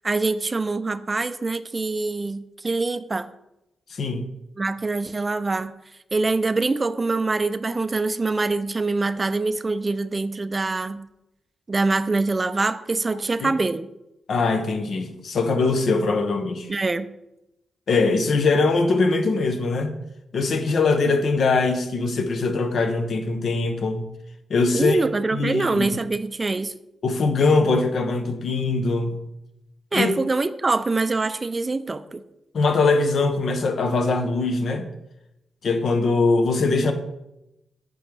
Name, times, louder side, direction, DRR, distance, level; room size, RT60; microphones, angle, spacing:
voice 1, 0.0-3.3 4.6-5.7 6.1-11.0 11.7-13.9 16.7-17.1 24.7-26.7 29.9-32.2, right 3 dB, 35° right, 13 dB, 0.4 m, -24 dB
voice 2, 3.9-4.3 13.1-13.5 14.3-16.7 17.9-19.9 20.3-24.1 24.5-25.0 25.3-25.9 27.0-29.2 29.9-30.1 32.5-34.9 35.6-36.9, left 3 dB, 65° left, 7 dB, 0.7 m, -22 dB
8.0 x 3.8 x 3.3 m, 0.89 s
supercardioid pair, 45°, 0 cm